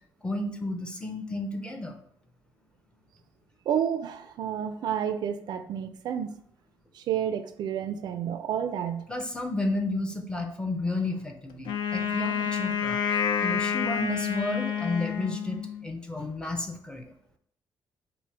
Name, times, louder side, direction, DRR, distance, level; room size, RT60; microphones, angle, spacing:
voice 1, 0.2-2.0 9.1-13.0 13.4-17.1, left 2 dB, 10° left, 0.5 m, -32 dB
voice 2, 3.7-6.4 6.9-9.0, right 9 dB, 65° right, 0.3 m, -30 dB
Wind instrument woodwind instrument, 11.6-15.9, left 7 dB, 85° left, 0.5 m, -29 dB
5.9 x 2.1 x 4.4 m
cardioid pair, 180°, 8 cm